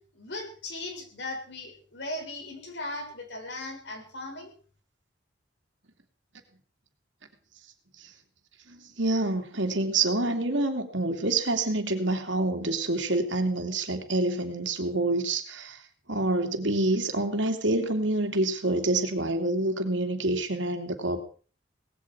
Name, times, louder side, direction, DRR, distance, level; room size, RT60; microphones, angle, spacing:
voice 1, 0.1-4.5, left 2 dB, 65° left, 3 dB, 6.2 m, -38 dB
voice 2, 8.7-15.8 16.1-21.2, right 2 dB, 80° right, 5 dB, 2.8 m, -27 dB
19.0 x 16.0 x 4.8 m, 0.41 s
head